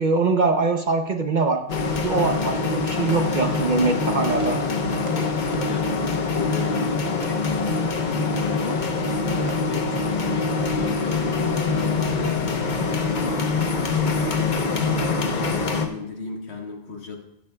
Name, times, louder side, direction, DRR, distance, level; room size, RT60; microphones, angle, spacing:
voice 1, 0.0-1.6 2.0-4.6, right 3 dB, 45° right, 6 dB, 0.8 m, -22 dB
sound 1, 1.7-15.9, left 4 dB, 45° left, 0.9 m, -24 dB
Fireworks, 2.7-10.7, right 2 dB, 30° right, 1.3 m, -46 dB
voice 2, 5.4-8.1 8.3-12.4 12.7-17.2, left 3 dB, 70° left, 2 dB, 1.6 m, -36 dB
15.5 x 11.5 x 2.2 m, 0.79 s
omnidirectional pair, 1.2 m